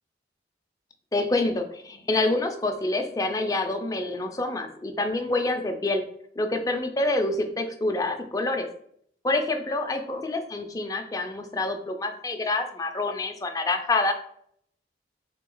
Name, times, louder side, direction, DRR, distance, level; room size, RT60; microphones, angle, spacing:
voice 1, 1.1-6.0 6.4-8.7 9.2-14.1, left 2 dB, 20° left, 4 dB, 0.4 m, -27 dB
3.7 x 3.0 x 3.8 m, 0.65 s
head